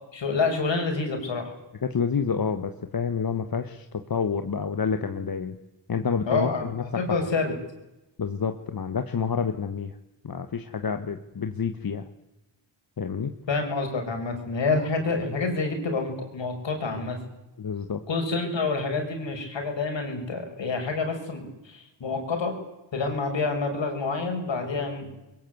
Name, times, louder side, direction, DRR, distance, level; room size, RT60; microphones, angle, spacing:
voice 1, 0.1-1.5 6.3-6.7 7.0-7.5 13.5-17.2 18.1-22.5 22.9-25.1, left 3 dB, 70° left, 4 dB, 6.2 m, -28 dB
voice 2, 1.8-5.6 5.9-7.3 8.2-9.9 10.2-12.0 13.0-13.3 17.6-18.0, left 6 dB, 50° left, 7 dB, 1.6 m, -28 dB
22.5 x 22.5 x 8.1 m, 0.98 s
cardioid pair, 90°, 46 cm